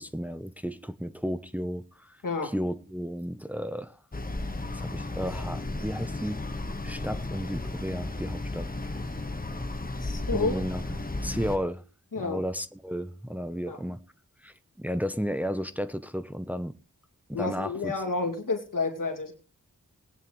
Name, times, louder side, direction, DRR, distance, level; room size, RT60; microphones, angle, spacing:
voice 1, 0.0-4.0 4.7-6.4 6.8-8.7 10.3-11.8 12.2-14.0 14.4-16.7 17.3-17.9, equal, 5° right, 0.8 m, -33 dB
sound 1, 4.1-11.6, left 2 dB, 25° left, 1.3 m, -34 dB
voice 2, 10.0-10.6 12.1-12.4 13.7-13.8 17.3-19.3, left 3 dB, 85° left, 2.4 m, -30 dB
20.5 x 9.3 x 3.1 m
wide cardioid pair, 60°, 32 cm